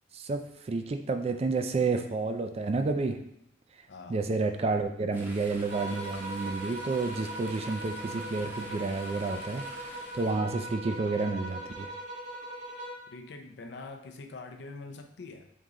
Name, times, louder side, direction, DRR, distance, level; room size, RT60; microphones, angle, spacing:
voice 1, 0.1-3.2 4.1-9.6 10.1-11.9, right 3 dB, 35° right, 6 dB, 0.3 m, -30 dB
voice 2, 3.9-4.2 13.1-15.5, left 3 dB, 65° left, 5 dB, 0.5 m, -44 dB
Chatter / Stream, 5.1-10.3, right 1 dB, 10° right, 0.7 m, -48 dB
sound 1, 5.7-13.1, right 1 dB, 65° right, 1.0 m, -40 dB
3.7 x 3.0 x 3.7 m, 0.81 s
head